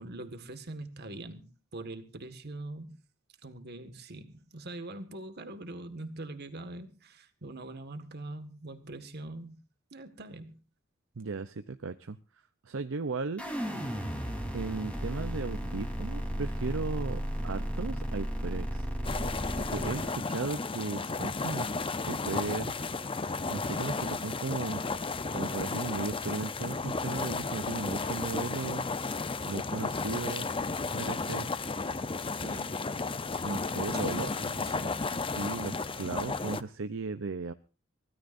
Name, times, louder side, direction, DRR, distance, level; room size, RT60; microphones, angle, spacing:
voice 1, 0.0-3.0 3.4-9.6 9.9-10.6 32.3-33.0 33.9-35.2, right 2 dB, 55° right, 1.8 m, -43 dB
voice 2, 11.2-12.2 12.6-13.4 14.5-18.9 19.7-22.7 23.5-24.8 25.3-28.9 29.5-30.5 30.9-31.5 33.4-34.3 35.1-37.5, right 4 dB, 70° right, 0.7 m, -36 dB
sound 1, 13.4-20.1, equal, 5° left, 3.7 m, -34 dB
sound 2, 19.0-36.6, left 4 dB, 25° left, 0.7 m, -33 dB
24.5 x 16.5 x 2.6 m
head